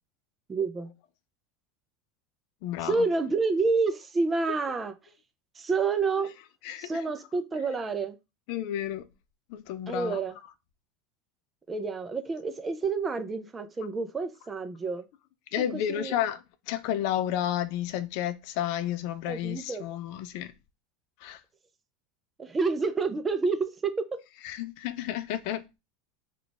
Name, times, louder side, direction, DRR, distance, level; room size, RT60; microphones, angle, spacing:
voice 1, 0.5-0.9 2.8-4.9 5.6-6.3 6.8-8.1 9.9-10.3 11.7-15.0 15.7-16.2 19.3-19.8 22.4-24.1, right 4 dB, 15° right, 0.4 m, -29 dB
voice 2, 2.6-3.1 6.6-7.0 8.5-9.0 9.5-10.2 15.5-20.5 21.2-21.4 24.4-25.6, left 11 dB, 55° left, 0.5 m, -31 dB
3.3 x 2.4 x 3.8 m
supercardioid pair, 150°, 0 cm